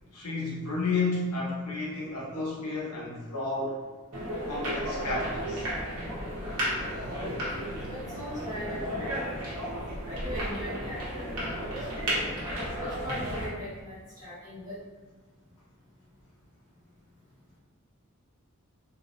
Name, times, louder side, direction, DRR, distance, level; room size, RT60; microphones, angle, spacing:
voice 1, 0.1-3.8 4.5-5.6, left 3 dB, 85° left, -4 dB, 0.9 m, -31 dB
sound 1, 4.1-13.5, equal, 90° right, 1.2 m, -33 dB
voice 2, 7.8-12.2 12.8-14.8, equal, 15° right, -12 dB, 1.4 m, -40 dB
3.5 x 2.8 x 2.6 m, 1.3 s
head